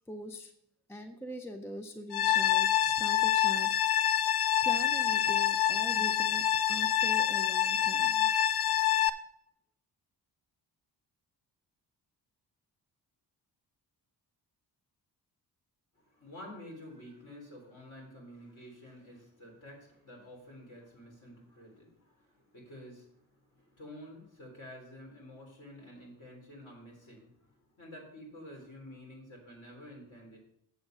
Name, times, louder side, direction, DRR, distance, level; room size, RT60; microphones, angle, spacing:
voice 1, 0.1-0.5 0.9-4.3 4.6-8.3, equal, 5° left, 6 dB, 0.4 m, -43 dB
sound 1, 2.1-9.1, left 10 dB, 70° left, 0.6 m, -27 dB
voice 2, 16.0-30.4, left 1 dB, 45° left, -1 dB, 3.7 m, -50 dB
7.9 x 7.1 x 5.3 m, 0.75 s
wide cardioid pair, 175°, 42 cm